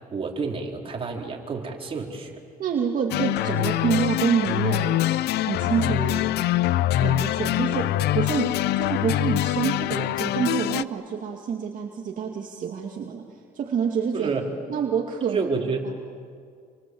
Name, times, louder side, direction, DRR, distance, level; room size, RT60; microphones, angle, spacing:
voice 1, 0.1-2.3 14.1-14.5 15.2-15.9, right 4 dB, 35° right, 0 dB, 4.2 m, -29 dB
voice 2, 2.6-5.0 5.4-6.4 7.0-13.3 13.5-14.3 14.7-15.5, right 7 dB, 50° right, 1 dB, 2.3 m, -27 dB
sound 1, 3.1-10.8, left 14 dB, 80° left, 0.7 m, -24 dB
28.0 x 24.5 x 7.9 m, 2.2 s
cardioid pair, 110°, 17 cm